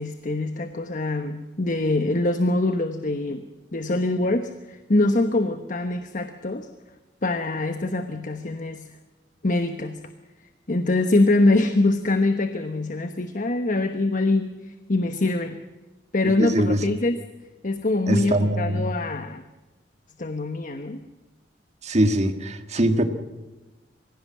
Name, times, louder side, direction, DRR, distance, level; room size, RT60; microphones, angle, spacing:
voice 1, 0.0-3.4 3.7-6.7 7.2-8.9 9.4-10.0 10.7-15.6 16.1-17.2 17.6-19.4 20.2-21.0, left 2 dB, 50° left, 1.1 m, -24 dB
voice 2, 16.2-16.8 18.1-18.9 21.8-23.0, right 1 dB, 40° right, 1.9 m, -22 dB
24.0 x 16.5 x 7.5 m
head